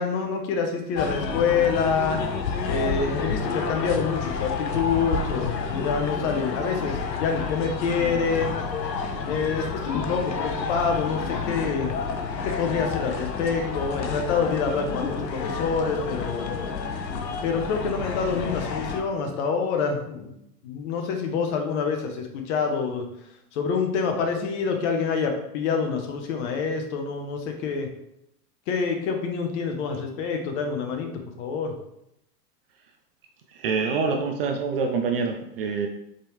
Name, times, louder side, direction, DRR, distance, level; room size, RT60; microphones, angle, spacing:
voice 1, 0.0-2.2 2.7-8.5 9.2-12.0 12.4-16.5 17.4-20.3 20.6-23.1 23.5-27.9 28.7-31.1 31.4-31.7, left 5 dB, 45° left, 4 dB, 1.0 m, -26 dB
sound 1, 1.0-19.0, left 5 dB, 90° left, 0.8 m, -30 dB
voice 2, 33.6-35.9, right 5 dB, 40° right, 4 dB, 0.4 m, -26 dB
4.3 x 3.6 x 3.2 m, 0.79 s
hypercardioid pair, 115°, 50 cm